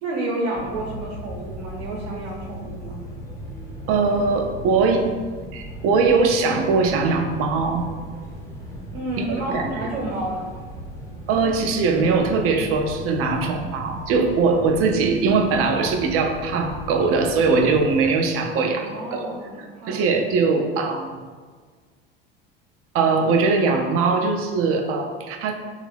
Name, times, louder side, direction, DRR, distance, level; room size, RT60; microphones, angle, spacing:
voice 1, 0.0-3.0 8.9-10.4 18.8-20.0, right 1 dB, 70° right, -4 dB, 1.0 m, -30 dB
sound 1, 0.5-18.1, right 1 dB, 10° left, 0.7 m, -37 dB
voice 2, 3.9-5.1 5.5-7.9 9.2-9.9 11.3-19.4 19.9-21.2 22.9-25.5, right 4 dB, 50° right, 4 dB, 0.5 m, -21 dB
3.3 x 2.4 x 3.3 m, 1.5 s
hypercardioid pair, 75°, 29 cm